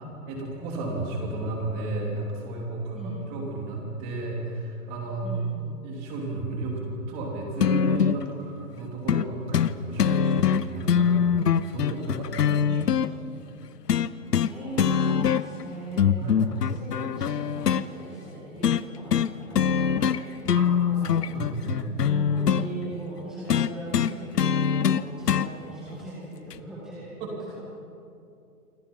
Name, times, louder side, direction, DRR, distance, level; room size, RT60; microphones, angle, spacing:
voice 1, 0.3-5.4 5.8-6.8 7.1-12.8 13.0-13.1 16.2-16.4 20.5-20.7 21.0-21.9 27.2-27.3, right 2 dB, 15° right, -1 dB, 3.3 m, -33 dB
voice 2, 2.9-3.3 5.2-5.9 12.4-13.1 14.5-21.2 22.0-27.6, right 1 dB, ahead, -10 dB, 2.0 m, -40 dB
sound 1, 7.6-8.2 9.1-9.3 9.5-9.7 10.0-13.1 13.9-14.5 14.8-15.6 16.0-17.8 18.6-18.8 19.1-19.3 19.6-20.2 20.5-22.7 23.5-25.5 26.5-26.6, left 8 dB, 85° left, 1.1 m, -23 dB
28.5 x 26.0 x 5.6 m, 2.6 s
hypercardioid pair, 175°, 47 cm